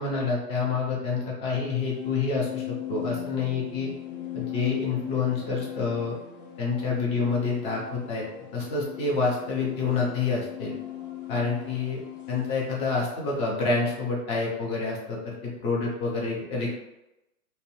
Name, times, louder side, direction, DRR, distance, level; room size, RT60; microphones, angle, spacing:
voice 1, 0.0-3.9 4.3-6.1 6.6-8.2 8.5-10.7 11.3-12.0 12.3-16.7, left 4 dB, 15° left, -3 dB, 0.4 m, -28 dB
sound 1, 1.7-12.8, left 12 dB, 80° left, 0.8 m, -38 dB
2.6 x 2.0 x 3.0 m, 0.92 s
hypercardioid pair, 115°, 43 cm